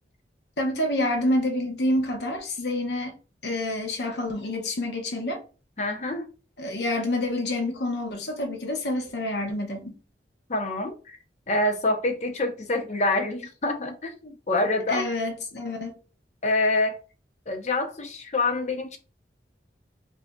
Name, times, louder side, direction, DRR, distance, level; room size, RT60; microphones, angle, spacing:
voice 1, 0.6-3.2 3.4-5.4 6.6-10.0 14.9-16.0, left 1 dB, 70° left, 0.8 m, -28 dB
voice 2, 5.8-6.3 10.5-11.2 11.5-15.1 16.4-17.0 17.5-19.0, left 2 dB, 40° left, 0.6 m, -26 dB
4.8 x 2.5 x 2.2 m
head